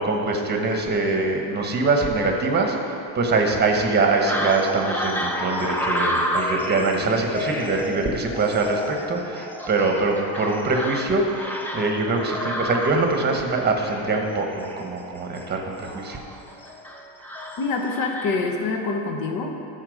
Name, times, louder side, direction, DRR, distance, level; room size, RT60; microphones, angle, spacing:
voice 1, 0.0-16.2, right 3 dB, 25° right, 2 dB, 1.1 m, -23 dB
sound 1, 4.3-18.5, equal, 5° left, 0.6 m, -30 dB
voice 2, 17.6-19.5, left 3 dB, 50° left, 3 dB, 1.2 m, -25 dB
13.0 x 4.3 x 6.3 m, 2.7 s
cardioid pair, 150°, 43 cm